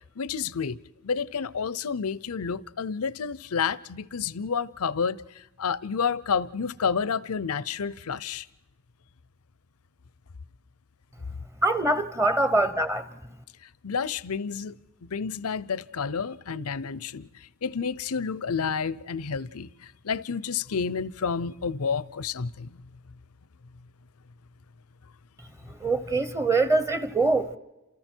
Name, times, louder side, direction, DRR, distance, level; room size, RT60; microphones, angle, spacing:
voice 1, 0.2-8.5 13.6-22.8, left 6 dB, 80° left, 0.7 m, -30 dB
voice 2, 11.6-13.1 25.8-27.6, right 2 dB, 15° right, 0.9 m, -23 dB
29.5 x 27.5 x 4.5 m
head